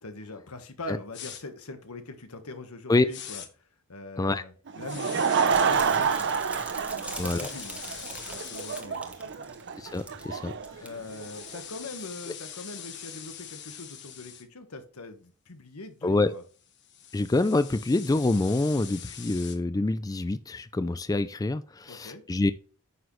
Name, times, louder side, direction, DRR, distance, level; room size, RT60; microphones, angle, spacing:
voice 1, 0.0-5.4 5.6-6.4 6.8-9.5 10.8-16.4 21.9-22.2, left 2 dB, 90° left, 8 dB, 1.4 m, -42 dB
sound 1, 1.1-1.4 3.1-3.5 4.9-5.5 7.0-8.8 10.9-14.4 16.5-19.6, left 9 dB, 55° left, 1.2 m, -43 dB
Laughter / Crowd, 4.7-11.6, right 6 dB, 55° right, 0.7 m, -28 dB
sound 2, 5.4-10.3 10.5-10.9 11.3-11.5, right 2 dB, 5° right, 1.1 m, -42 dB
voice 2, 7.2-7.5 9.8-10.8 16.0-16.3 17.1-22.5, left 2 dB, 15° left, 13 dB, 0.3 m, -26 dB
9.3 x 6.2 x 3.1 m, 0.39 s
head